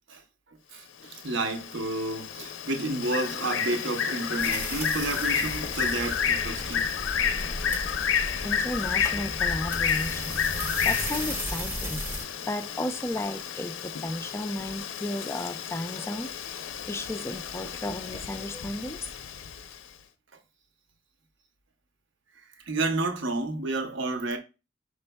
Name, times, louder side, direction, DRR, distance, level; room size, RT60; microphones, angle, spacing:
voice 1, 0.7-6.9 22.7-24.4, right 2 dB, 70° right, 0.8 m, -30 dB
Bird, 1.0-19.8, left 7 dB, 85° left, 0.5 m, -31 dB
sound 1, 4.4-12.2, equal, 10° right, 0.7 m, -35 dB
voice 2, 8.4-10.4 10.8-12.0 12.5-19.0, left 1 dB, 15° left, 0.3 m, -34 dB
5.1 x 4.2 x 2.2 m
head